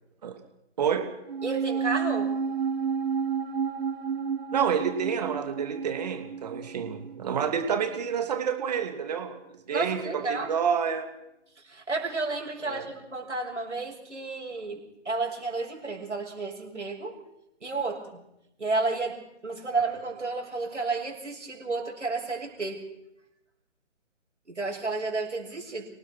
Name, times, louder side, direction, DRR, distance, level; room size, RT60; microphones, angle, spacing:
sound 1, 1.3-7.8 8.1-8.2, right 6 dB, 55° right, 0.9 m, -31 dB
voice 1, 1.4-2.3 9.7-10.5 11.6-17.2 17.6-18.2 18.6-19.2 19.4-22.8 24.5-25.9, right 3 dB, 75° right, 0 dB, 7.1 m, -31 dB
voice 2, 4.5-9.4 9.7-11.1 12.6-12.8, right 7 dB, 35° right, 6 dB, 2.8 m, -28 dB
26.5 x 18.0 x 6.1 m, 0.85 s
figure-of-eight pair, 145°, 36 cm